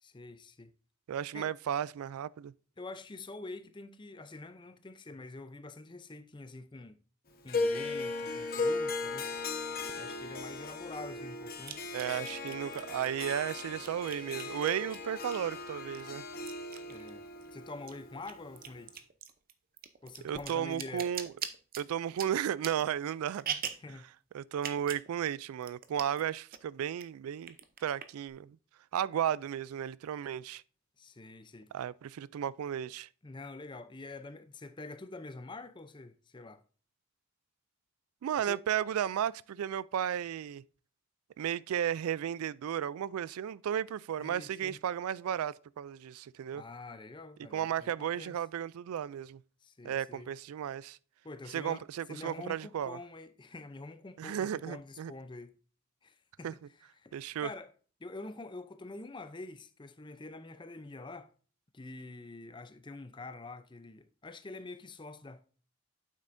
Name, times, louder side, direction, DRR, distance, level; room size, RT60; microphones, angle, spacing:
voice 1, 0.0-0.7 1.3-1.5 2.8-7.0 7.4-9.3 10.0-11.8 16.9-17.2 17.5-19.0 20.0-21.1 23.8-24.1 31.0-31.7 33.2-36.6 38.4-38.6 44.2-44.8 46.5-48.4 49.6-50.3 51.2-55.6 56.0-56.5 57.0-57.7 58.0-61.3 61.7-65.4, left 2 dB, 20° left, 0.5 m, -46 dB
voice 2, 1.1-2.5 11.9-16.2 20.2-21.3 21.8-23.6 24.3-27.6 27.8-28.6 28.9-30.6 31.7-33.1 38.2-40.6 41.4-46.6 47.5-49.4 49.8-51.0 51.5-53.0 54.2-55.1 56.4-56.5 57.1-57.5, right 9 dB, 85° right, 0.3 m, -34 dB
Harp, 7.5-18.8, left 3 dB, 45° left, 1.1 m, -37 dB
sound 1, 9.9-10.0 11.6-15.6 15.9-17.5 17.7-23.9 24.5-25.1 25.3-25.4 25.6-26.2 26.5-27.0 27.4-28.3, right 8 dB, 40° right, 0.6 m, -42 dB
9.0 x 7.5 x 2.6 m
head